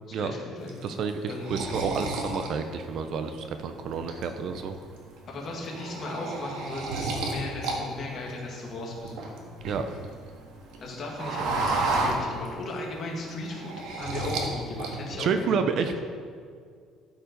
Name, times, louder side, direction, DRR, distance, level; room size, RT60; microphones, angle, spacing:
voice 1, 0.1-0.9 1.3-1.5 5.3-9.5 10.8-15.7, left 2 dB, 35° left, -2 dB, 1.9 m, -36 dB
sound 1, 0.7-3.4 3.8-4.6 5.0-5.2 5.5-7.8 8.0-10.1 10.5-12.8 13.1-14.5 14.8-15.4, right 3 dB, 85° right, 1.6 m, -31 dB
voice 2, 0.8-4.8 9.6-9.9 15.2-15.9, right 6 dB, 45° right, 8 dB, 0.5 m, -29 dB
12.5 x 5.3 x 5.1 m, 2.1 s
cardioid pair, 175°, 0 cm